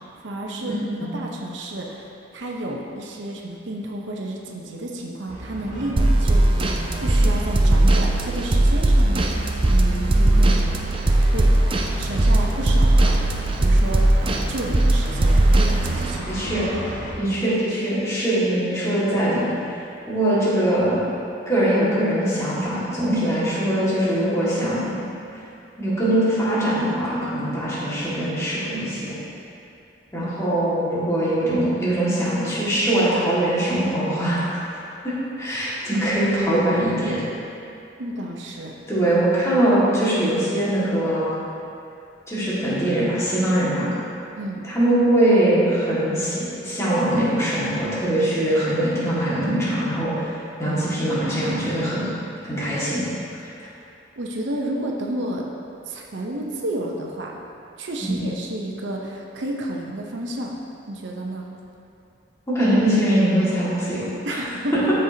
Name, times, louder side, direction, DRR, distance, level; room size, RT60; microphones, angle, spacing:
voice 1, 0.2-0.7 1.1-10.7 11.3-11.5 12.0-16.5 17.2-17.4 30.2-30.3 38.0-38.7 44.4-44.7 54.2-55.5 55.9-57.3 57.8-60.6 60.9-61.5 64.2-64.8, right 1 dB, 80° right, -1 dB, 0.8 m, -31 dB
sound 1, 5.3-17.2, right 1 dB, 45° right, 1.0 m, -34 dB
sound 2, 6.0-16.2, right 1 dB, 30° right, 0.4 m, -18 dB
voice 2, 16.3-16.7 17.2-19.5 20.1-21.0 21.5-24.9 25.8-29.2 30.1-37.2 38.9-41.3 42.3-43.9 44.6-50.2 50.6-52.1 52.5-53.1 58.0-58.2 62.5-64.4, right 1 dB, 15° left, -10 dB, 1.9 m, -22 dB
13.0 x 5.4 x 2.8 m, 2.6 s
head